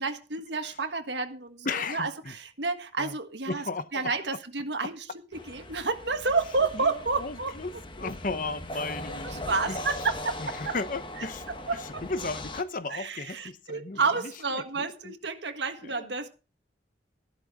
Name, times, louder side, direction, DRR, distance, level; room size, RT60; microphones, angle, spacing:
voice 1, 0.0-3.6 3.9-5.1 5.3-7.6 8.0-8.1 9.2-10.7 11.2-12.1 12.9-16.3, right 4 dB, 75° right, 1.6 m, -30 dB
voice 2, 1.6-2.3 3.0-3.1 3.5-4.0 6.7-9.9 10.4-11.4 12.0-15.1 15.9-16.1, left 3 dB, 50° left, 0.9 m, -35 dB
sound 1, 5.3-12.6, left 1 dB, 30° left, 1.1 m, -40 dB
13.5 x 12.0 x 3.7 m
head